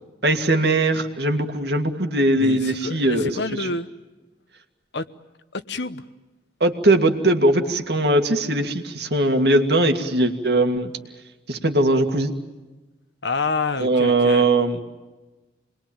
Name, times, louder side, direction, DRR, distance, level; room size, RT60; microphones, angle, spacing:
voice 1, 0.2-3.7 6.6-10.9 11.5-12.3 13.8-14.8, right 2 dB, 60° right, 5 dB, 2.2 m, -20 dB
voice 2, 2.4-3.9 4.9-5.1 5.5-6.0 13.2-14.5, left 3 dB, 70° left, 11 dB, 1.1 m, -28 dB
28.0 x 21.0 x 8.9 m, 1.2 s
head